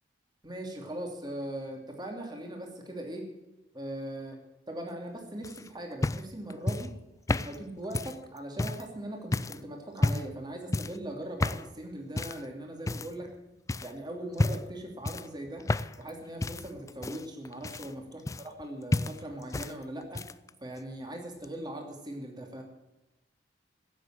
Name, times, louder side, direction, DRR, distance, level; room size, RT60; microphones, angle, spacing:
voice 1, 0.4-3.2 3.7-4.4 4.7-6.9 7.3-13.3 13.8-15.6 16.0-20.2 20.6-22.6, right 1 dB, 25° right, 2 dB, 2.9 m, -40 dB
sound 1, 5.4-8.9 9.3-9.6 10.0-10.4 10.7-11.0 11.4-11.7 12.2-12.5 12.9-13.4 13.7-13.9 14.3-14.7 15.0-16.1 16.4-18.7 18.9-19.7 20.0-20.5 21.4-21.5, left 2 dB, 20° left, 0.4 m, -31 dB
15.5 x 7.7 x 7.6 m, 1.0 s
head